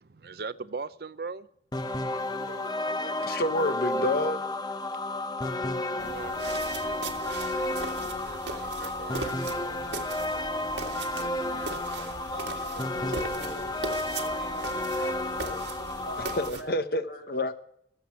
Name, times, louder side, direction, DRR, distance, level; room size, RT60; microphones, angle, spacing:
voice 1, 0.0-1.5 2.3-3.3 5.9-12.1, right 4 dB, 60° right, 0.5 m, -42 dB
sound 1, 1.7-16.5, left 2 dB, 25° left, 0.8 m, -32 dB
voice 2, 3.2-4.4 16.4-17.5, left 1 dB, 55° left, 1.0 m, -28 dB
sound 2, 6.0-16.6, right 3 dB, 85° right, 1.9 m, -39 dB
voice 3, 12.0-13.8 14.1-16.7 17.1-17.3, right 1 dB, 75° left, 6.0 m, -44 dB
19.0 x 7.9 x 7.2 m
head